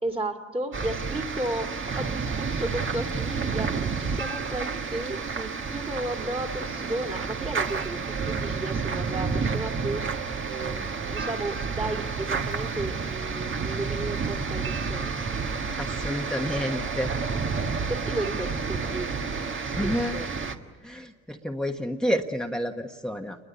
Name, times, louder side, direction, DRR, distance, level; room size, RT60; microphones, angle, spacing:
voice 1, 0.0-10.0 10.5-15.1 17.9-19.2 19.8-20.3, right 2 dB, 20° right, 3 dB, 2.4 m, -34 dB
sound 1, 0.7-20.6, right 5 dB, 40° right, 1.7 m, -30 dB
voice 2, 15.8-17.1 19.8-20.1 20.8-23.4, equal, ahead, 3 dB, 1.3 m, -29 dB
28.5 x 21.5 x 8.4 m, 1.5 s
cardioid pair, 90°, 30 cm